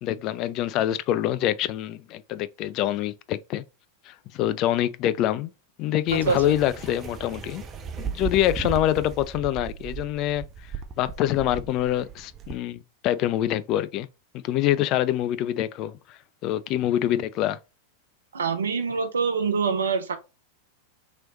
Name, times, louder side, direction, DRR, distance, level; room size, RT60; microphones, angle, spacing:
voice 1, 0.0-3.6 4.1-5.5 5.8-7.6 8.0-10.4 11.0-14.1 14.4-17.6, left 12 dB, 40° left, 0.3 m, -25 dB
sound 1, 6.1-12.6, right 6 dB, 25° right, 0.5 m, -36 dB
voice 2, 18.3-20.2, right 5 dB, 70° right, 0.7 m, -25 dB
3.0 x 3.0 x 3.8 m
figure-of-eight pair, 90°, 0 cm